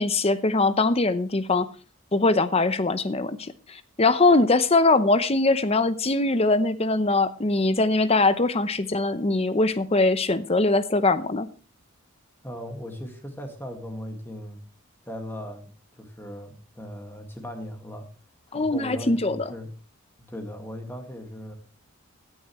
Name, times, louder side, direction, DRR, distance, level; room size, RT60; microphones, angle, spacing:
voice 1, 0.0-1.7 2.1-11.5 18.5-19.5, left 2 dB, 30° left, 13 dB, 0.7 m, -22 dB
voice 2, 12.4-14.6 15.0-18.1 18.5-19.7 20.2-21.5, equal, 10° left, 4 dB, 1.9 m, -38 dB
16.5 x 10.5 x 3.1 m, 0.36 s
head